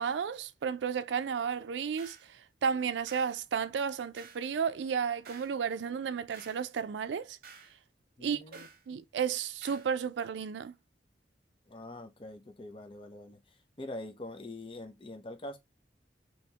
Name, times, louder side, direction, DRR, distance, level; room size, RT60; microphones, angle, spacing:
voice 1, 0.0-7.4 8.2-10.7, right 7 dB, 85° right, 0.4 m, -33 dB
sound 1, 2.0-2.3 3.1-3.4 4.2-4.5 5.2-5.6 6.3-6.7 7.4-7.8 8.5-8.8 9.6-9.9, right 5 dB, 55° right, 0.9 m, -52 dB
voice 2, 8.2-8.7 11.7-13.4 13.8-15.6, left 1 dB, 30° left, 0.7 m, -44 dB
3.4 x 2.8 x 2.9 m
head